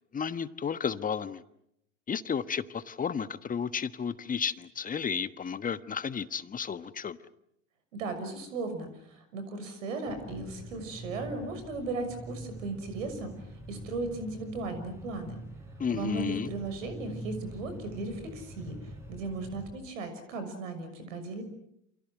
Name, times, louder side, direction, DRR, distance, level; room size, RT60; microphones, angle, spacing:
voice 1, 0.1-1.4 2.1-7.2 15.8-16.5, left 7 dB, 20° left, 13 dB, 1.3 m, -32 dB
voice 2, 7.9-13.3 13.7-15.4 15.9-18.8 19.1-21.4, right 3 dB, 70° right, 9 dB, 6.3 m, -36 dB
sound 1, 10.0-19.7, right 1 dB, 5° right, 8.0 m, -44 dB
29.0 x 28.0 x 6.3 m, 0.77 s
figure-of-eight pair, 80°, 39 cm